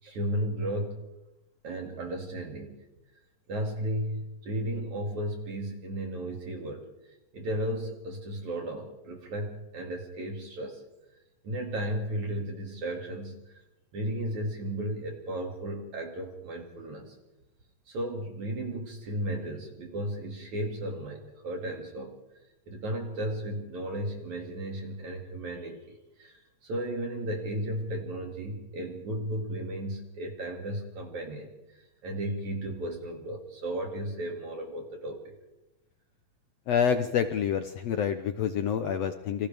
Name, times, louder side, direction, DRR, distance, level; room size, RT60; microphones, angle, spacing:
voice 1, 0.0-1.0 1.6-2.8 3.5-6.9 7.3-10.8 11.4-13.6 13.9-17.2 17.9-22.1 22.7-35.3, right 1 dB, 55° right, 1 dB, 3.7 m, -34 dB
voice 2, 36.7-39.5, left 8 dB, 80° left, 8 dB, 1.4 m, -27 dB
28.5 x 26.5 x 3.5 m, 0.98 s
omnidirectional pair, 4.0 m